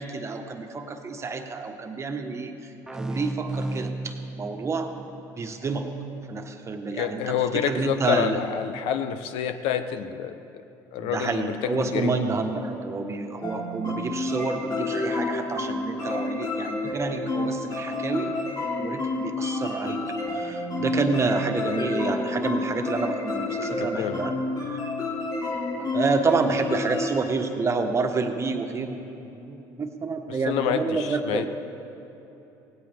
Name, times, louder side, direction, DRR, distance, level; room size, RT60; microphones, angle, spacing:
voice 1, 0.0-4.9 5.3-5.9 6.3-8.4 11.0-18.4 18.8-24.8 25.8-31.5, right 4 dB, 30° right, 5 dB, 1.3 m, -29 dB
sound 1, 2.9-6.3, right 1 dB, 5° right, 0.4 m, -35 dB
voice 2, 6.9-10.4 10.9-12.2 23.8-24.2 30.5-31.5, left 9 dB, 75° left, 10 dB, 0.8 m, -28 dB
sound 2, 13.4-27.1, left 2 dB, 45° left, 2.8 m, -29 dB
17.5 x 16.5 x 3.6 m, 3.0 s
supercardioid pair, 90°, 9 cm